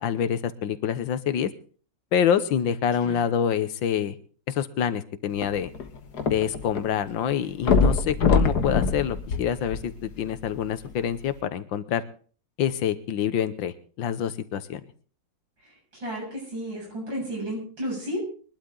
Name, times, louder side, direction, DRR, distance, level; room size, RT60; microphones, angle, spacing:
voice 1, 0.0-1.5 2.1-4.2 4.5-5.7 6.3-12.0 12.6-14.8, left 8 dB, 90° left, 13 dB, 1.7 m, -26 dB
sound 1, 5.3-6.8 7.1-7.2 7.6-10.2 10.9-11.0, left 4 dB, 60° left, 1.9 m, -23 dB
voice 2, 16.0-18.2, equal, 90° right, -2 dB, 8.5 m, -32 dB
22.5 x 12.0 x 3.9 m, 0.41 s
omnidirectional pair, 2.0 m